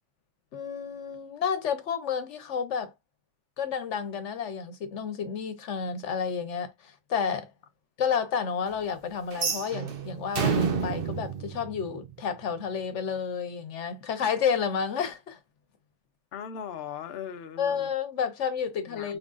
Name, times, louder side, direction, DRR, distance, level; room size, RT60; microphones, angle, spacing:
voice 1, 0.5-2.9 3.6-7.5 8.0-15.4 17.6-19.2, left 7 dB, 85° left, 1.2 m, -30 dB
sound 1, 9.3-12.4, right 6 dB, 55° right, 0.9 m, -30 dB
voice 2, 16.3-17.9 18.8-19.2, left 8 dB, 60° left, 0.8 m, -39 dB
5.2 x 3.7 x 2.4 m
omnidirectional pair, 1.2 m